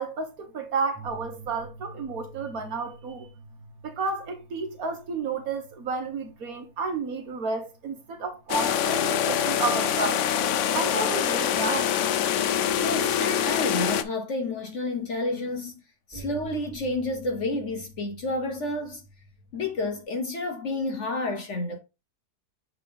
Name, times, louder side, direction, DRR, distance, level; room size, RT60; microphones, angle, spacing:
voice 1, 0.0-3.3 3.8-10.2 10.7-11.9, right 4 dB, 60° right, 1.4 m, -31 dB
sound 1, 0.9-10.3 11.2-11.3 16.1-20.0, right 1 dB, 5° right, 1.6 m, -48 dB
sound 2, 8.5-14.0, left 9 dB, 75° left, 0.7 m, -25 dB
voice 2, 12.8-15.7 16.1-19.0 19.5-21.8, left 2 dB, 55° left, 1.0 m, -30 dB
7.1 x 3.6 x 3.8 m
omnidirectional pair, 1.8 m